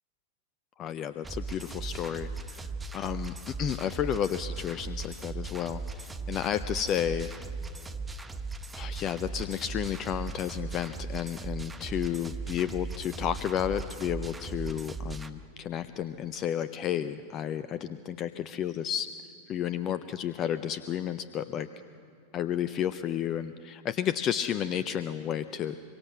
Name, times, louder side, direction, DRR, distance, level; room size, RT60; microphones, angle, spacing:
voice 1, 0.8-7.3 8.7-19.1 19.5-21.7 22.3-25.7, left 9 dB, 30° left, 13 dB, 0.6 m, -32 dB
sound 1, 1.2-15.3, right 3 dB, 10° right, 0.9 m, -38 dB
25.0 x 24.0 x 6.2 m, 2.6 s
figure-of-eight pair, 90°, 0 cm